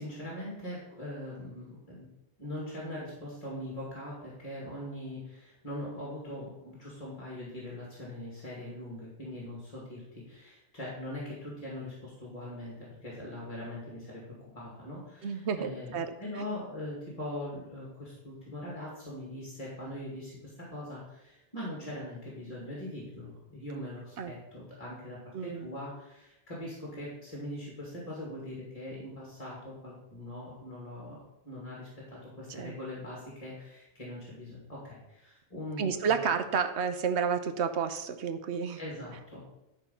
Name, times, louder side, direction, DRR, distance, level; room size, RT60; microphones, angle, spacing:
voice 1, 0.0-2.1 2.4-14.2 14.5-36.1 38.8-39.4, left 1 dB, 35° left, -5 dB, 2.3 m, -41 dB
voice 2, 15.2-16.1 16.3-16.4 24.2-24.3 25.3-25.7 32.6-32.7 35.8-38.8, right 6 dB, 85° right, 9 dB, 1.1 m, -30 dB
11.0 x 4.1 x 5.5 m, 0.92 s
omnidirectional pair, 1.1 m